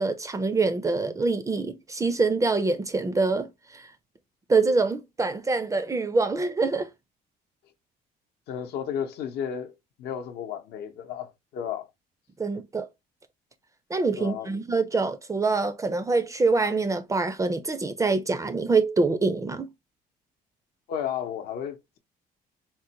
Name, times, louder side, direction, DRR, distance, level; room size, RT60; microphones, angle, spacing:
voice 1, 0.0-3.9 4.5-6.9 12.4-12.9 13.9-19.7, right 3 dB, 20° right, 0.4 m, -25 dB
voice 2, 8.5-11.9 14.2-14.5 20.9-22.0, left 8 dB, 70° left, 0.7 m, -33 dB
3.8 x 2.1 x 2.8 m
cardioid pair, 110°, 17 cm